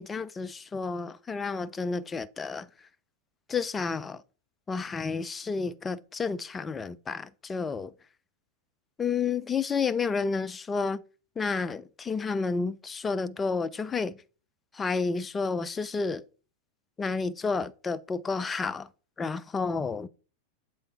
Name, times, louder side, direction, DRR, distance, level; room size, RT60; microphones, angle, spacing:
voice 1, 0.0-2.7 3.5-4.2 4.7-7.9 9.0-11.0 11.4-14.2 14.7-16.2 17.0-18.9 19.2-20.1, left 4 dB, 15° left, 0.3 m, -30 dB
7.7 x 3.2 x 4.2 m
figure-of-eight pair, 90°, 0 cm